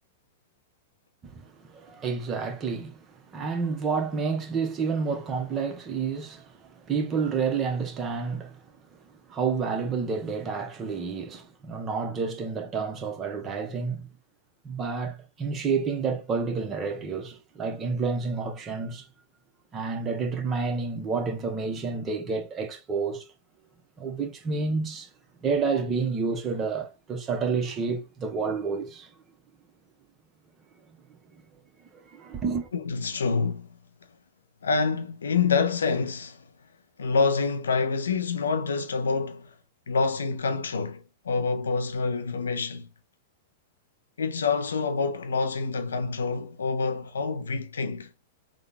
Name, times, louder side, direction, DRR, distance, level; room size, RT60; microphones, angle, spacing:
voice 1, 1.2-8.6 8.9-9.0 9.3-14.1 14.6-19.1 19.7-23.2 24.0-25.1 25.4-29.1 31.1-31.2 31.9-32.7, right 5 dB, 30° right, 0.9 m, -29 dB
voice 2, 32.7-33.8 34.6-36.4 37.0-39.5 39.9-42.9 44.2-48.1, left 4 dB, 85° left, 0.5 m, -27 dB
3.7 x 2.2 x 3.6 m
hypercardioid pair, 105°, 0 cm